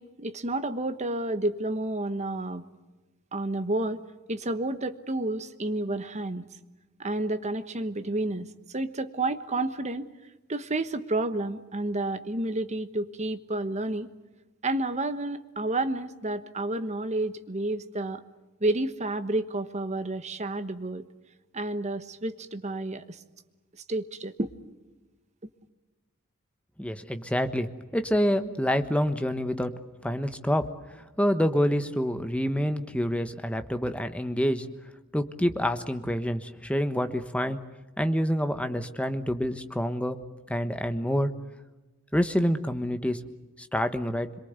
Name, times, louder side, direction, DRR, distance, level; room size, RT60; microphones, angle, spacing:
voice 1, 0.0-2.6 3.3-4.0 4.3-6.5 7.0-10.1 10.5-14.1 14.6-18.2 18.6-21.0 21.5-23.2 23.9-24.6, right 2 dB, 30° right, 10 dB, 1.2 m, -30 dB
voice 2, 26.8-29.7 30.0-30.7 31.2-34.7 35.1-37.6 38.0-40.2 40.5-41.3 42.1-43.2 43.6-44.3, equal, 5° left, 8 dB, 1.2 m, -27 dB
26.0 x 23.0 x 8.2 m, 1.1 s
head